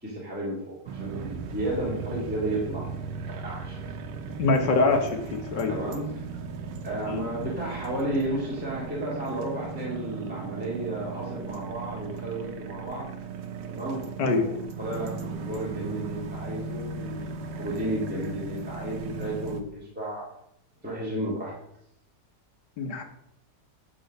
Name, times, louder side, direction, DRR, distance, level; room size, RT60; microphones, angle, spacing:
voice 1, 0.0-3.8 5.7-6.2 6.8-13.1 13.7-20.3 20.8-21.5, right 1 dB, 5° right, -6 dB, 1.9 m, -33 dB
sound 1, 0.9-19.6, right 5 dB, 80° right, 1.5 m, -37 dB
voice 2, 4.4-5.8 7.1-7.2 14.2-14.5 22.8-23.0, left 3 dB, 75° left, 4 dB, 1.7 m, -24 dB
8.5 x 3.8 x 6.4 m, 0.77 s
omnidirectional pair, 1.9 m